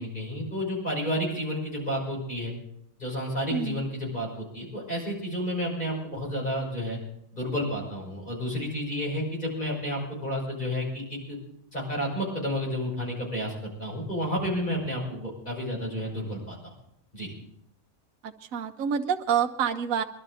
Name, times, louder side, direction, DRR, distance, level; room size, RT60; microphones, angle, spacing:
voice 1, 0.0-2.5 3.0-7.0 7.3-11.4 11.7-16.7 17.1-17.3, equal, 35° left, -3 dB, 6.1 m, -31 dB
voice 2, 3.5-3.8 18.2-20.0, right 7 dB, 85° right, 5 dB, 1.1 m, -27 dB
22.5 x 12.0 x 4.1 m, 0.77 s
omnidirectional pair, 1.4 m